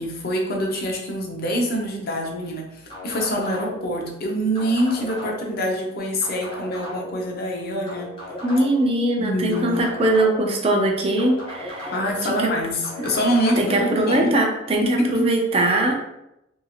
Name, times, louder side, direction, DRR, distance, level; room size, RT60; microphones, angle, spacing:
voice 1, 0.0-8.1 9.2-9.9 11.9-14.3 14.8-15.3, equal, 50° left, 0 dB, 0.6 m, -25 dB
sound 1, 2.9-3.9 4.5-5.6 6.2-7.2 7.9-8.9 9.5-10.6 11.2-12.2 12.8-13.7, left 1 dB, 25° left, 0.9 m, -36 dB
voice 2, 8.4-11.9 12.2-12.5 13.6-15.9, right 1 dB, 30° right, 1 dB, 0.5 m, -21 dB
2.8 x 2.8 x 2.4 m, 0.85 s
head